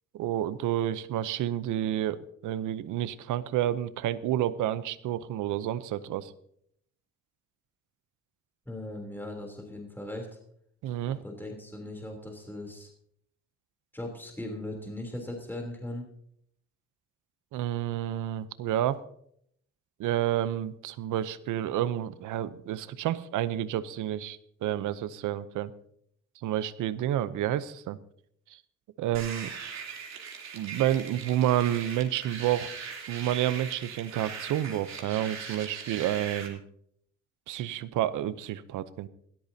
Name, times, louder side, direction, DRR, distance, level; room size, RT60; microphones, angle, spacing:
voice 1, 0.1-6.3 10.8-11.2 17.5-19.0 20.0-25.7 26.4-28.0 29.0-29.5 30.5-36.6 37.5-39.1, right 12 dB, 85° right, 15 dB, 0.8 m, -30 dB
voice 2, 8.6-10.3 11.1-12.9 13.9-16.1, left 1 dB, 5° left, 2 dB, 3.3 m, -39 dB
sound 1, 29.1-36.5, right 6 dB, 60° right, 3.3 m, -40 dB
19.5 x 13.5 x 2.8 m, 0.69 s
cardioid pair, 90°, 30 cm